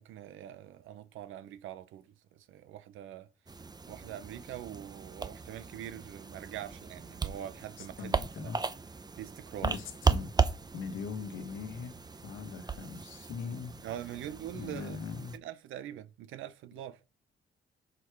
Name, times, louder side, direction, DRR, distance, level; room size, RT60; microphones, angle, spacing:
voice 1, 0.0-2.0 2.5-3.3 3.9-8.1 8.4-8.5 9.2-9.7 13.8-15.0 15.3-17.0, right 11 dB, 85° right, 0.8 m, -43 dB
Scroll and Tap Foley - Touch Screen Phone or Tablet, 3.5-15.4, right 4 dB, 20° right, 0.7 m, -36 dB
voice 2, 7.8-8.6 9.6-10.3 10.7-11.9 12.2-13.7 14.5-15.4, left 5 dB, 85° left, 1.3 m, -40 dB
6.2 x 4.8 x 4.6 m
cardioid pair, 90°, 20 cm